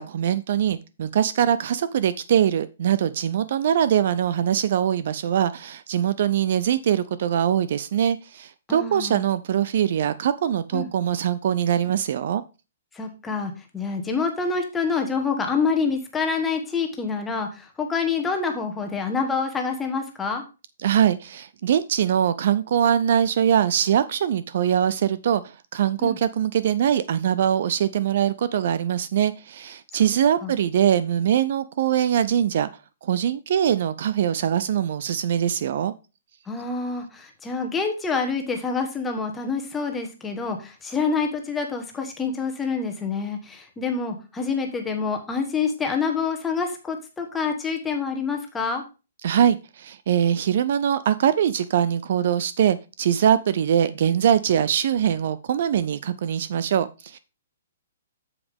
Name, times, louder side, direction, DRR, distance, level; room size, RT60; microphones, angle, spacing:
voice 1, 0.0-12.4 20.8-32.7 33.0-35.9 49.2-57.2, right 9 dB, 45° right, 0.4 m, -22 dB
voice 2, 8.7-9.2 10.7-10.9 12.9-20.4 26.0-26.2 30.4-30.5 36.5-48.8, left 5 dB, 5° left, 1.2 m, -27 dB
8.2 x 7.2 x 3.5 m
hypercardioid pair, 175°, 0 cm